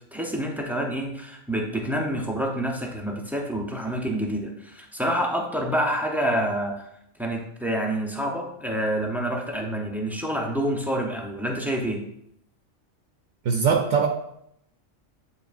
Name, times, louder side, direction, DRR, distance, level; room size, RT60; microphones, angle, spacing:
voice 1, 0.1-6.9 7.2-12.0, right 1 dB, ahead, 0 dB, 0.5 m, -27 dB
voice 2, 13.4-14.1, right 6 dB, 70° right, 3 dB, 0.9 m, -21 dB
9.2 x 4.1 x 2.6 m, 0.75 s
omnidirectional pair, 1.3 m